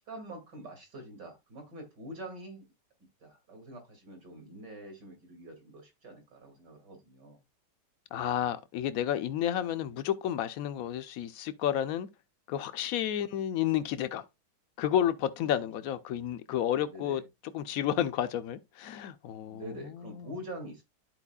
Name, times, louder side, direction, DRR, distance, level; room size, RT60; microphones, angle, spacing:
voice 1, 0.0-2.7 3.2-7.4 16.9-17.2 19.5-20.8, right 1 dB, 75° right, 3.0 m, -45 dB
voice 2, 8.1-12.1 12.5-14.2 14.8-17.2 17.5-20.3, left 10 dB, 65° left, 1.0 m, -31 dB
12.5 x 4.5 x 2.3 m
omnidirectional pair, 1.9 m